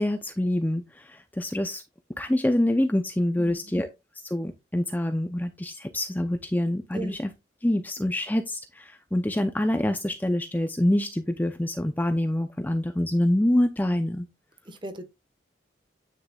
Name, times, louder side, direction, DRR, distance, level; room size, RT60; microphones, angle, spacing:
voice 1, 0.0-1.8 2.2-3.9 4.2-7.3 7.6-14.3, left 1 dB, 10° left, 0.5 m, -26 dB
voice 2, 3.4-3.7 6.9-7.2 14.6-15.0, right 2 dB, 25° right, 1.2 m, -37 dB
9.7 x 6.4 x 2.3 m
head